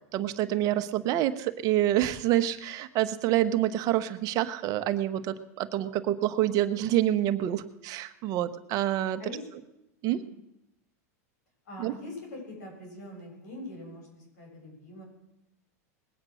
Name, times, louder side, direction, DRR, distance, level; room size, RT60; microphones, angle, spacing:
voice 1, 0.1-9.2 10.0-10.2 11.8-11.9, right 13 dB, 45° right, 10 dB, 1.0 m, -27 dB
voice 2, 11.7-15.0, left 1 dB, 85° left, 0 dB, 8.0 m, -43 dB
20.0 x 8.8 x 6.3 m, 0.88 s
supercardioid pair, 125°, 9 cm